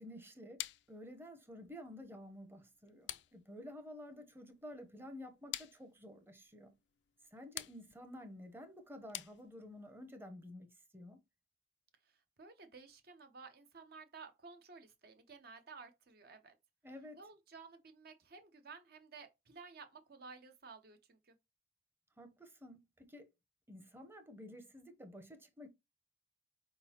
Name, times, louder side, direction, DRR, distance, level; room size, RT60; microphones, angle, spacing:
voice 1, 0.0-6.7 7.3-11.2 16.8-17.2 22.2-23.3 23.7-25.7, left 1 dB, 15° right, 0.7 m, -52 dB
sound 1, 0.6-9.9, left 14 dB, 75° left, 0.4 m, -50 dB
voice 2, 12.0-16.6 17.1-21.4, right 4 dB, 60° right, 0.8 m, -55 dB
4.6 x 3.8 x 2.8 m
head